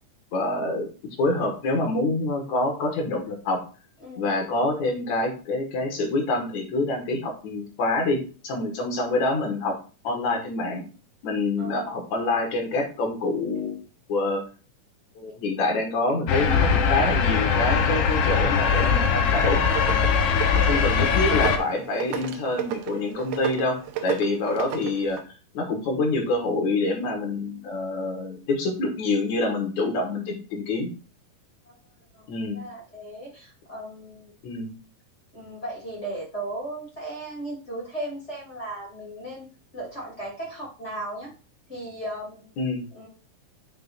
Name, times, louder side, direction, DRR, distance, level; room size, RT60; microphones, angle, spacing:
voice 1, 0.3-3.6 4.2-9.8 10.0-10.9 11.2-13.8 14.1-14.4 15.2-19.6 20.6-25.2 25.5-30.9 32.3-32.6 34.4-34.7 42.6-42.8, left 2 dB, 65° left, 2 dB, 2.7 m, -26 dB
voice 2, 11.6-12.0 20.1-20.8 31.7-31.8 32.1-32.3 32.5-34.3 35.3-39.5 39.7-41.3 41.7-42.4 42.9-43.1, right 1 dB, 25° left, -3 dB, 2.6 m, -36 dB
sound 1, 16.3-21.6, left 6 dB, 85° left, 1.3 m, -21 dB
sound 2, 19.4-25.2, right 11 dB, 85° right, 2.3 m, -34 dB
7.8 x 5.4 x 2.5 m, 0.36 s
omnidirectional pair, 3.8 m